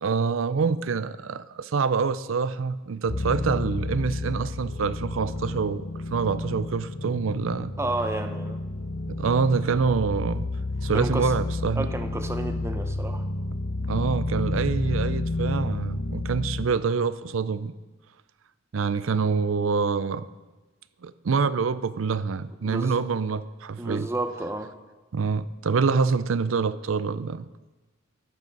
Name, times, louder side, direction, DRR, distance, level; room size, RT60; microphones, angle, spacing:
voice 1, 0.0-7.7 9.1-10.5 10.8-11.9 13.9-17.7 18.7-20.3 21.0-24.1 25.1-27.4, right 5 dB, 75° right, 16 dB, 0.5 m, -26 dB
sound 1, 3.1-16.7, left 2 dB, 80° left, 0.9 m, -30 dB
voice 2, 7.8-8.6 10.9-11.3 11.8-13.2 22.6-23.0 23.8-24.7, right 2 dB, 15° right, 7 dB, 0.7 m, -31 dB
11.5 x 10.5 x 5.3 m, 1.2 s
head